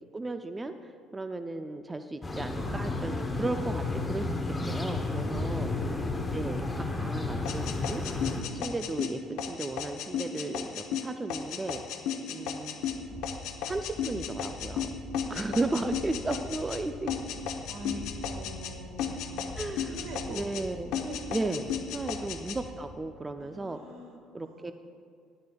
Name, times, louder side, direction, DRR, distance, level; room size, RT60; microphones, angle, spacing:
voice 1, 0.1-4.4 4.7-5.7 6.3-8.0 8.5-11.8 12.3-12.7 13.6-14.9 15.3-17.2 19.6-20.0 20.3-20.9 21.3-23.8 24.3-24.7, right 2 dB, 15° right, 8 dB, 0.3 m, -35 dB
sound 1, 2.2-8.4, left 2 dB, 15° left, 0.8 m, -32 dB
voice 2, 5.1-5.8 15.2-15.6 17.6-20.5 21.0-21.3 21.6-21.8 23.4-24.7, right 1 dB, 75° right, 2 dB, 1.6 m, -46 dB
sound 2, 7.5-16.8 17.1-18.7 19.0-20.7 20.9-22.6, left 8 dB, 75° left, 0.8 m, -34 dB
sound 3, 12.8-22.9, left 2 dB, 50° left, 2.0 m, -45 dB
13.0 x 11.5 x 2.3 m, 2.2 s
cardioid pair, 135°, 0 cm